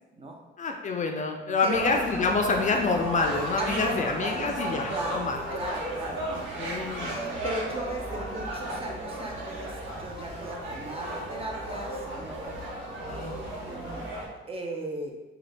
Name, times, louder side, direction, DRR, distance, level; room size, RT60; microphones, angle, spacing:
voice 1, 0.6-5.4 6.6-7.2 13.0-13.4, left 4 dB, 40° left, 3 dB, 0.4 m, -27 dB
sound 1, 1.7-14.3, right 1 dB, 75° right, 1.1 m, -35 dB
voice 2, 3.6-4.5 4.9-5.2 5.5-6.2 7.1-12.5 13.1-14.0 14.5-15.2, right 1 dB, 30° right, 1 dB, 0.6 m, -36 dB
3.8 x 2.3 x 3.3 m, 1.1 s
cardioid pair, 90°, 20 cm